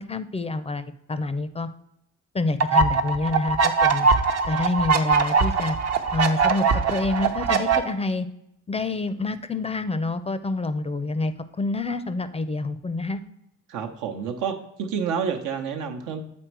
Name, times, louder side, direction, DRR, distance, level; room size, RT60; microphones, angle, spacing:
voice 1, 0.0-1.7 2.3-4.1 4.5-5.8 6.1-6.6 6.9-8.3 8.7-13.2, left 3 dB, 20° left, 12 dB, 0.4 m, -27 dB
sound 1, 2.6-7.8, right 5 dB, 55° right, 0.8 m, -21 dB
voice 2, 13.7-16.2, right 6 dB, 85° right, 5 dB, 0.9 m, -29 dB
7.8 x 4.2 x 4.6 m, 0.79 s
cardioid pair, 90°, 30 cm